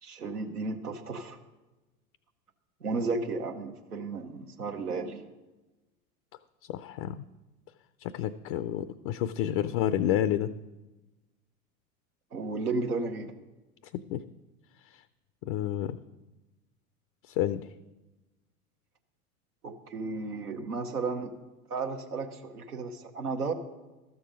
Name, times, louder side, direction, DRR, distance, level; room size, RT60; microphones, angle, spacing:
voice 1, 0.0-1.4 2.8-5.2 12.3-13.3 19.6-21.3 21.7-23.5, right 3 dB, 90° right, 4 dB, 1.0 m, -33 dB
voice 2, 6.7-7.2 8.0-10.5 13.9-14.2 14.9-15.0 15.4-16.0 17.3-17.7, left 11 dB, 40° left, 13 dB, 0.4 m, -30 dB
13.0 x 7.0 x 5.0 m, 1.1 s
figure-of-eight pair, 85°, 44 cm